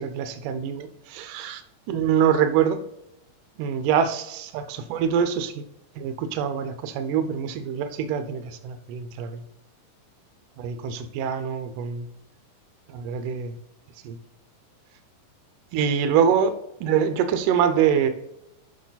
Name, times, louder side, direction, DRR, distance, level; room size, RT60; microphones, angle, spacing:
voice 1, 0.0-1.6 1.9-2.8 3.6-5.6 6.0-9.4 10.6-12.1 12.9-13.6 14.0-14.2 15.7-16.6 16.8-18.1, right 8 dB, 85° right, 9 dB, 1.8 m, -24 dB
8.7 x 6.0 x 4.0 m, 0.83 s
omnidirectional pair, 4.7 m